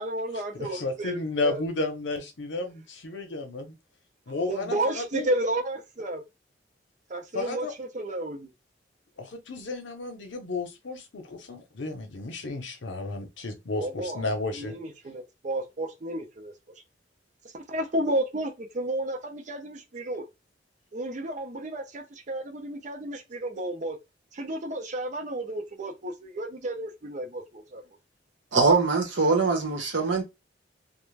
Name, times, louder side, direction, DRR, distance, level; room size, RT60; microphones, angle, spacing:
voice 1, 0.0-1.6 4.5-6.2 7.1-8.5 13.8-14.2 14.5-16.5 17.5-20.2 20.9-24.0 24.3-27.8, right 1 dB, 40° right, 0.5 m, -32 dB
voice 2, 0.5-3.8 4.3-5.3 7.3-7.7 9.2-14.8, left 3 dB, 75° left, 0.7 m, -32 dB
voice 3, 28.5-30.2, right 4 dB, 80° right, 0.9 m, -22 dB
2.5 x 2.1 x 3.2 m
head